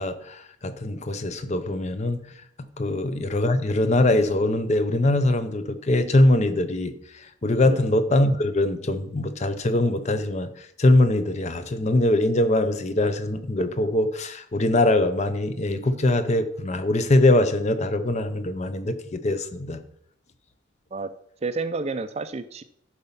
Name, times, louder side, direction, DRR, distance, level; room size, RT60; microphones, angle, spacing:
voice 1, 0.0-2.2 2.8-6.9 7.4-10.5 10.8-19.8, left 1 dB, 35° left, 11 dB, 0.5 m, -22 dB
voice 2, 21.4-22.6, right 3 dB, 30° right, 12 dB, 0.4 m, -30 dB
11.0 x 4.3 x 5.6 m, 0.75 s
head